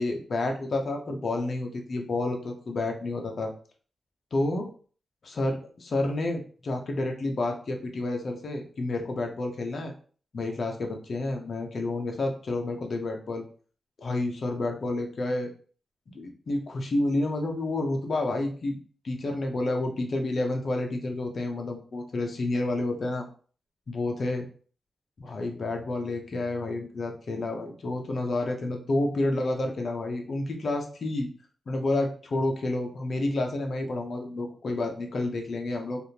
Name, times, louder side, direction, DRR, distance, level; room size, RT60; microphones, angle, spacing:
voice 1, 0.0-3.5 4.3-4.7 5.2-9.9 10.3-13.4 14.0-15.5 16.1-18.8 19.0-23.3 23.9-24.5 25.2-31.3 31.7-36.1, left 2 dB, 50° left, 3 dB, 0.7 m, -29 dB
3.4 x 2.5 x 2.8 m, 0.42 s
wide cardioid pair, 140°, 0 cm